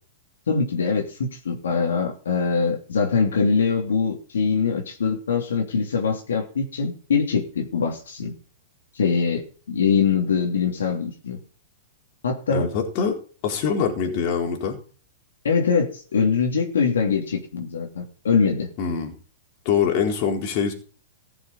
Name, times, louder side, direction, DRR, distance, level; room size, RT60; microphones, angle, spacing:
voice 1, 0.5-8.3 8.9-11.4 12.2-12.7 15.4-18.7, left 5 dB, 80° left, 1 dB, 3.0 m, -23 dB
voice 2, 12.5-13.2 13.4-14.8 18.8-19.2 19.6-20.7, left 6 dB, 45° left, 2 dB, 4.1 m, -24 dB
15.5 x 7.0 x 5.5 m, 0.41 s
hypercardioid pair, 115°, 0 cm